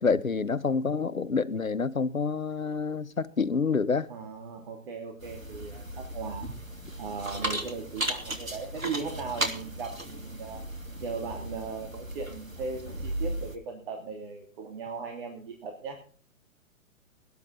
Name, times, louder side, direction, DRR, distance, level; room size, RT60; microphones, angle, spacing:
voice 1, 0.0-4.1, left 4 dB, 85° left, 0.9 m, -27 dB
voice 2, 4.1-6.5 7.0-10.6 11.0-16.0, right 5 dB, 40° right, 3.0 m, -38 dB
sound 1, 5.2-13.6, right 1 dB, 85° right, 3.0 m, -36 dB
20.0 x 11.0 x 4.1 m
figure-of-eight pair, 120°, 40 cm